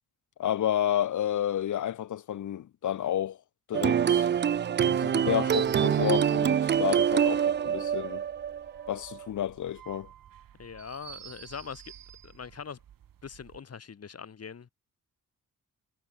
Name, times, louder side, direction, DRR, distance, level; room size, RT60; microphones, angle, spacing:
voice 1, 0.4-3.4 3.7-4.3 4.8-8.2 8.9-10.1, left 11 dB, 65° left, 0.9 m, -30 dB
sound 1, 3.7-9.3, right 8 dB, 35° right, 0.4 m, -25 dB
sound 2, 5.5-13.6, right 10 dB, 85° right, 4.0 m, -51 dB
voice 2, 10.6-11.9 12.2-12.8 13.2-14.7, left 6 dB, 50° left, 3.8 m, -42 dB
cardioid pair, 110°, 33 cm